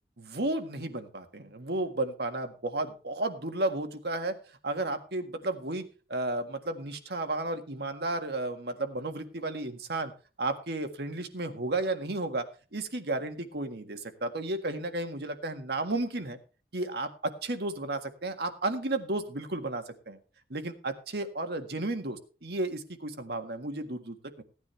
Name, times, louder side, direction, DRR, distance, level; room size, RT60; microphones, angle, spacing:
voice 1, 0.2-4.3 4.6-5.8 6.1-10.1 10.4-16.4 16.7-20.2 20.5-24.4, right 2 dB, 65° right, 7 dB, 1.8 m, -33 dB
16.5 x 9.9 x 3.3 m, 0.35 s
head